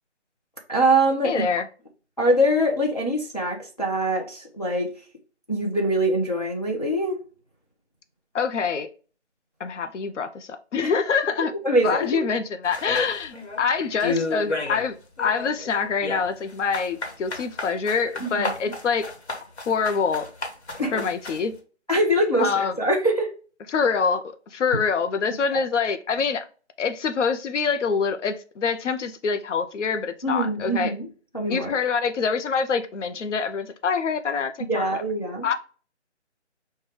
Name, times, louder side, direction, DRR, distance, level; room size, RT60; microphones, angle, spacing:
voice 1, 0.7-1.5 2.2-4.9 5.5-7.2 10.8-10.9 11.6-12.2 18.2-18.5 20.8-21.0 21.9-23.3 25.5-25.6 30.2-31.1 31.3-31.7 34.6-35.5, right 1 dB, 35° left, 0.4 m, -23 dB
voice 2, 1.2-1.6 8.3-8.9 9.6-11.5 11.8-19.0 19.7-20.3 20.9-21.5 22.4-22.7 23.7-24.2 24.5-26.4 26.8-30.9 31.5-35.0 35.4-35.5, left 5 dB, 90° left, 0.5 m, -25 dB
sound 1, 12.7-13.6 14.0-14.9 15.2-21.5, left 3 dB, 65° left, 1.1 m, -31 dB
4.8 x 2.2 x 3.1 m
figure-of-eight pair, 170°, 35 cm